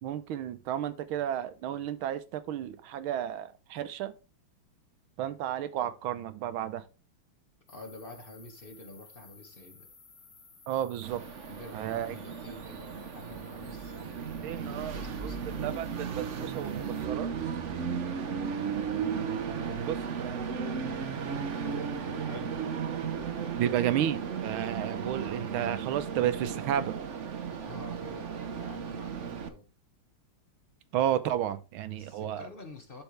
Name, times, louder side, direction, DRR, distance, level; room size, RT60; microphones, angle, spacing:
voice 1, 0.0-4.1 5.2-6.8 10.7-11.2 11.7-12.1 14.2-15.0 15.2-15.3 15.6-17.3 19.7-20.4 23.5-27.0 30.9-32.4, right 11 dB, 80° right, 1.5 m, -32 dB
sound 1, 7.7-17.1, left 4 dB, 50° left, 3.1 m, -57 dB
voice 2, 7.7-9.9 11.5-15.4 19.5-19.9 22.0-22.6 24.7-24.9 27.5-29.7 31.9-33.0, left 2 dB, 30° left, 1.4 m, -47 dB
Train, 11.0-29.5, right 6 dB, 55° right, 0.8 m, -35 dB
11.5 x 4.5 x 3.3 m
omnidirectional pair, 2.3 m